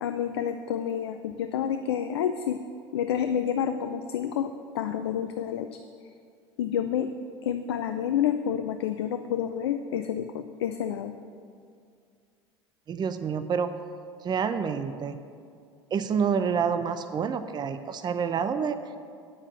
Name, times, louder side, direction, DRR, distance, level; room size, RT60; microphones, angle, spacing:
voice 1, 0.0-2.6 2.9-5.7 6.6-7.1 7.4-11.1, left 9 dB, 75° left, 8 dB, 0.5 m, -29 dB
voice 2, 12.9-13.7 14.2-15.2 15.9-18.8, right 6 dB, 30° right, 10 dB, 0.7 m, -28 dB
9.8 x 7.3 x 7.8 m, 2.2 s
figure-of-eight pair, 70°, 14 cm